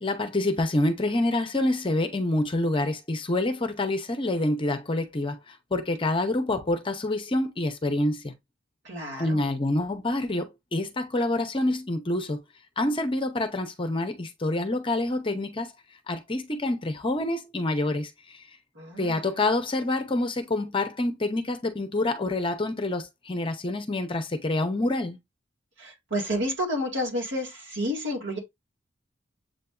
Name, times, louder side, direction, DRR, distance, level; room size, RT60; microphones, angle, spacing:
voice 1, 0.0-8.3 9.2-12.4 12.8-15.7 16.1-18.4 19.0-25.2, left 2 dB, 25° left, 0.7 m, -27 dB
voice 2, 8.8-9.4 18.8-19.2 25.8-28.4, equal, 65° right, 1.9 m, -30 dB
7.5 x 2.6 x 2.2 m
head